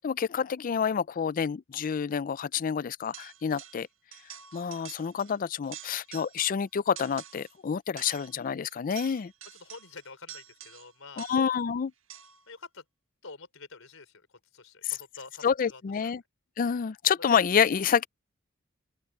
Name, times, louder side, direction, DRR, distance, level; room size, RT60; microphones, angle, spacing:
voice 1, 0.0-3.9 4.5-9.3 11.2-11.9 14.8-15.0 15.4-16.2 16.6-18.1, left 7 dB, 45° left, 0.4 m, -28 dB
sound 1, 3.1-3.9 4.1-5.4 5.6-6.6 7.0-7.6 8.0-11.6 12.1-12.5, right 11 dB, 75° right, 1.5 m, -47 dB
voice 2, 9.4-11.3 12.5-12.8 13.2-14.3 14.5-16.1, left 4 dB, 90° left, 3.9 m, -48 dB
open air
head